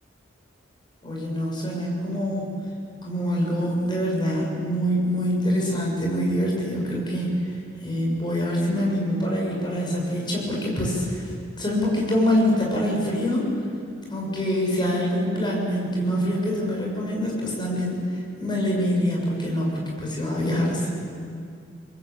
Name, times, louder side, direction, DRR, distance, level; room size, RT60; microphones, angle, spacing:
voice 1, 1.0-2.5 3.0-7.3 7.8-11.2 11.6-13.5 14.1-20.9, equal, 25° left, -2 dB, 7.0 m, -25 dB
29.0 x 22.0 x 8.7 m, 2.3 s
head